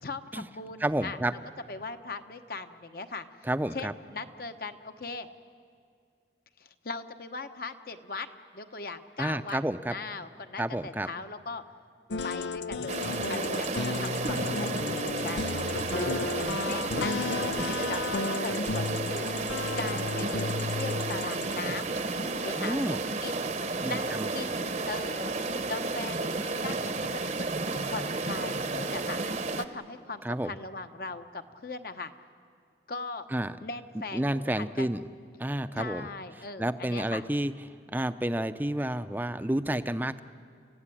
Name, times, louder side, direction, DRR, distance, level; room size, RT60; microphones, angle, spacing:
voice 1, 0.0-1.2 1.7-3.3 3.7-5.3 6.6-8.3 8.5-9.6 9.9-11.6 12.2-21.9 22.4-25.3 25.7-27.5 27.8-29.2 29.6-32.1 32.9-33.3 33.6-34.2 34.5-34.9 35.7-37.3, left 3 dB, 55° left, 8 dB, 1.1 m, -39 dB
voice 2, 0.8-1.3 3.4-3.9 9.2-9.9 10.6-11.1 22.6-23.0 23.8-24.3 30.2-30.5 33.3-33.6 34.1-35.1 35.4-36.1 36.6-37.5 37.9-40.2, right 1 dB, 10° right, 11 dB, 0.6 m, -30 dB
sound 1, 12.1-21.5, left 4 dB, 85° left, 0.6 m, -33 dB
sound 2, 12.9-29.6, right 3 dB, 40° right, 0.9 m, -32 dB
29.5 x 16.0 x 10.0 m, 2.3 s
head